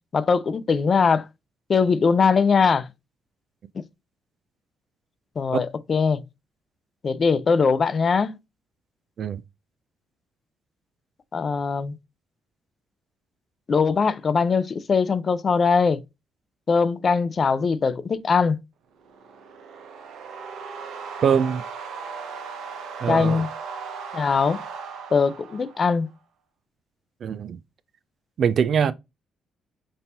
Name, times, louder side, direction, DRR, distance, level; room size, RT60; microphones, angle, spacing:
voice 1, 0.1-1.2 1.7-2.9 5.4-6.2 7.0-8.3 11.3-12.0 13.7-16.0 16.7-18.6 23.1-23.5 24.1-24.6 25.1-26.1, left 5 dB, 40° left, 0.5 m, -21 dB
sound 1, 19.0-26.1, right 5 dB, 80° right, 0.9 m, -37 dB
voice 2, 21.2-21.6 23.0-23.5 27.2-27.6 28.4-28.9, right 7 dB, 60° right, 0.4 m, -22 dB
5.3 x 2.8 x 2.8 m
cardioid pair, 90°, 0 cm